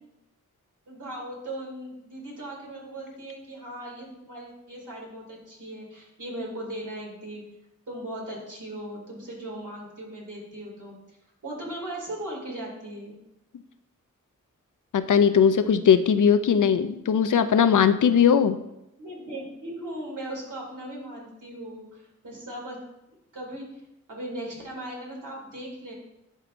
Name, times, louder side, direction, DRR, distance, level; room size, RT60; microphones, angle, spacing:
voice 1, 0.9-7.4 7.9-11.0 11.4-13.2 19.0-22.8 23.3-23.7 24.1-25.9, right 1 dB, 75° right, -3 dB, 2.6 m, -38 dB
voice 2, 14.9-18.6, left 7 dB, 75° left, 10 dB, 0.5 m, -19 dB
11.0 x 4.8 x 2.6 m, 0.87 s
wide cardioid pair, 55°, 31 cm